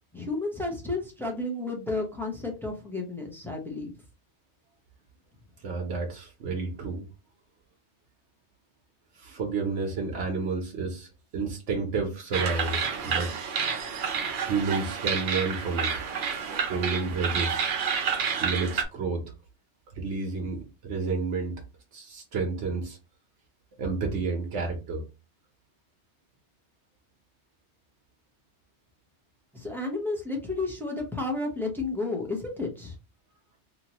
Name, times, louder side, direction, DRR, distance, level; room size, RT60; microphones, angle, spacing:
voice 1, 0.1-3.9 29.5-33.0, left 2 dB, ahead, 0 dB, 0.6 m, -32 dB
voice 2, 5.6-7.0 9.1-13.3 14.5-15.9 16.7-17.7 18.4-19.2 19.9-21.6 21.9-23.0 23.8-25.0, right 4 dB, 85° right, 1 dB, 1.1 m, -30 dB
sound 1, 12.3-18.8, right 6 dB, 60° right, 0.6 m, -29 dB
3.0 x 2.5 x 2.9 m, 0.29 s
omnidirectional pair, 1.2 m